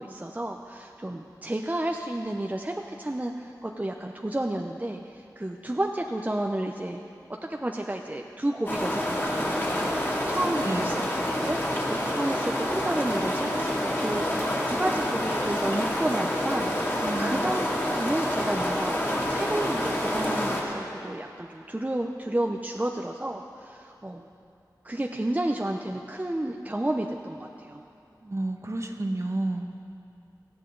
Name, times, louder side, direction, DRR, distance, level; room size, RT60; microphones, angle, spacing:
voice 1, 0.0-7.0 7.5-11.0 11.4-17.7 17.9-24.3 24.8-27.8, right 1 dB, 20° right, 2 dB, 0.7 m, -31 dB
sound 1, 8.7-20.6, left 1 dB, 30° left, 2.6 m, -28 dB
voice 2, 10.6-11.0 17.0-17.7 27.5-27.9 28.2-29.7, right 2 dB, 40° right, 4 dB, 1.1 m, -32 dB
18.5 x 14.5 x 3.9 m, 2.5 s
wide cardioid pair, 60°, 7 cm